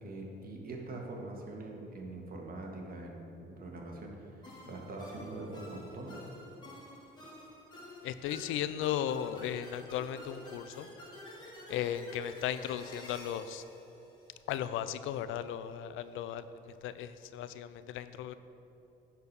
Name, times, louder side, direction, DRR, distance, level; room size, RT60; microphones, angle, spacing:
voice 1, 0.0-6.2, right 2 dB, 50° right, 0 dB, 1.7 m, -43 dB
sound 1, 4.4-14.8, left 1 dB, 20° left, 2.2 m, -50 dB
voice 2, 8.0-10.9 11.7-13.6 14.5-16.4 16.8-18.3, left 10 dB, 85° left, 13 dB, 0.4 m, -36 dB
10.0 x 4.5 x 6.7 m, 2.8 s
cardioid pair, 90°, 20 cm